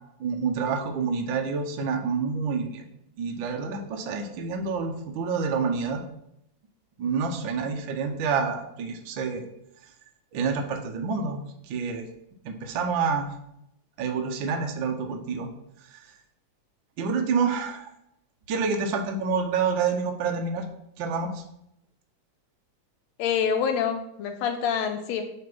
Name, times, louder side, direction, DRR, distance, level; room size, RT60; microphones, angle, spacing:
voice 1, 0.2-2.8 3.2-6.0 7.0-9.4 10.3-12.0 12.4-13.3 14.0-15.5 15.9-16.0 17.0-17.9 18.5-20.6 21.0-21.4, right 5 dB, 85° right, 4 dB, 1.0 m, -28 dB
voice 2, 23.2-25.2, left 7 dB, 80° left, 6 dB, 1.7 m, -26 dB
7.2 x 3.3 x 6.0 m, 0.79 s
omnidirectional pair, 3.3 m